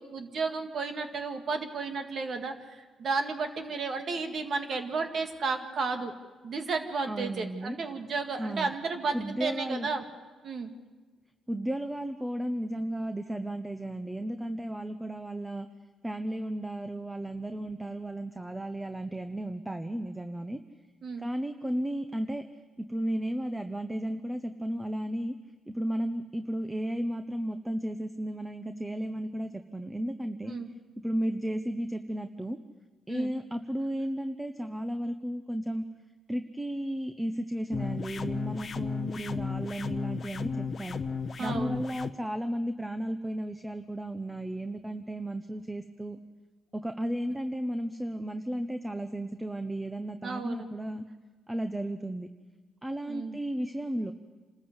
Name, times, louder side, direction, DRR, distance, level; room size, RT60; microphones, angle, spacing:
voice 1, 0.0-2.5 3.0-6.1 6.4-10.0 10.4-10.7 21.0-21.3 30.5-30.7 33.1-33.3 41.4-41.8 50.2-50.7 53.1-53.4, right 4 dB, 55° right, 6 dB, 2.0 m, -33 dB
voice 2, 7.1-7.8 8.4-8.7 9.1-9.9 11.5-15.7 16.0-20.6 21.2-22.4 22.8-25.3 25.7-30.6 31.0-32.6 33.1-35.8 36.3-41.0 41.4-46.2 46.7-51.0 51.5-52.3 52.8-54.1, right 1 dB, 10° right, 8 dB, 0.9 m, -34 dB
sound 1, 37.7-42.1, left 5 dB, 45° left, 0.9 m, -34 dB
26.5 x 13.5 x 8.0 m, 1.3 s
cardioid pair, 90°, 0 cm